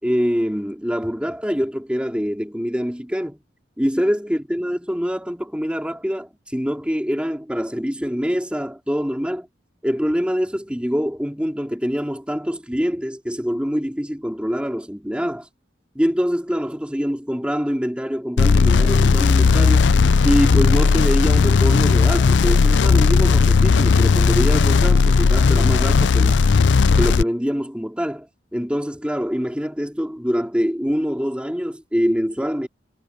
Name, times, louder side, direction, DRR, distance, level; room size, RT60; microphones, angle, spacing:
voice 1, 0.0-3.4 3.8-9.5 9.8-15.5 16.0-19.9 20.2-26.5 26.9-28.3 28.5-32.7, equal, 5° right, 3.7 m, -24 dB
sound 1, 18.4-27.2, left 4 dB, 75° left, 0.5 m, -15 dB
head